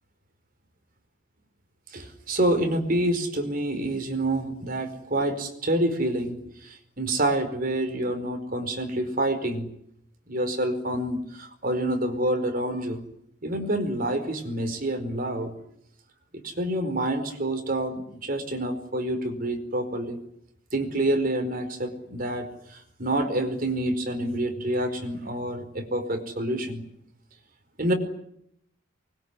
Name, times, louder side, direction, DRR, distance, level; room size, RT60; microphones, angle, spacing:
voice 1, 1.9-6.4 6.6-9.6 10.3-13.0 13.4-15.5 16.3-20.2 20.7-26.8 27.8-27.9, right 1 dB, 45° right, 6 dB, 4.8 m, -27 dB
24.0 x 22.0 x 9.8 m, 0.74 s
head